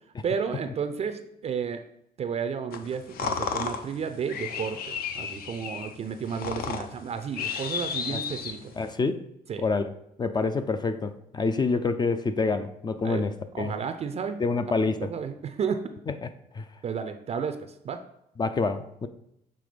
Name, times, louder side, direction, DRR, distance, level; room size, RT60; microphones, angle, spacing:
voice 1, 0.2-1.8 2.2-8.7 9.5-9.6 13.0-13.3 13.5-14.4 14.8-15.8 16.8-18.0, right 6 dB, 40° right, 8 dB, 0.5 m, -32 dB
sound 1, 2.7-8.9, left 6 dB, 60° left, 0.8 m, -34 dB
voice 2, 8.8-9.2 9.6-9.9 10.2-13.7 14.4-15.1 16.5-16.6 18.4-19.1, left 4 dB, 25° left, 10 dB, 0.4 m, -27 dB
6.8 x 3.5 x 5.0 m, 0.76 s
cardioid pair, 110°, 17 cm